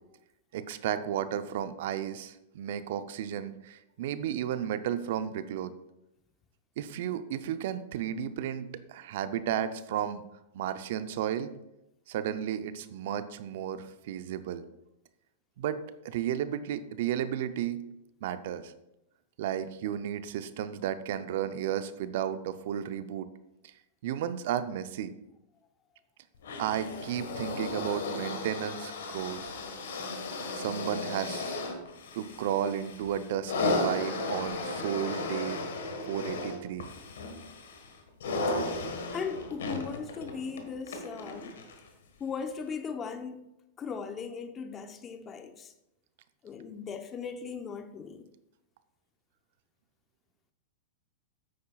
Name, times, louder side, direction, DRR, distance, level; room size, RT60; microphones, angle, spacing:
voice 1, 0.5-5.7 6.8-10.2 10.5-11.5 12.1-14.7 15.6-15.8 16.0-17.8 18.2-18.7 19.4-23.3 24.0-25.1 26.6-29.5 30.5-31.6 32.1-35.6 36.1-36.9, right 10 dB, 60° right, 0.6 m, -33 dB
sound 1, 26.4-41.9 42.7-42.8, left 3 dB, 70° left, 1.4 m, -35 dB
voice 2, 39.1-41.6 42.2-43.4 43.8-45.7 46.4-48.3, left 6 dB, 25° left, 0.8 m, -38 dB
9.4 x 8.6 x 2.4 m
hypercardioid pair, 105°, 0 cm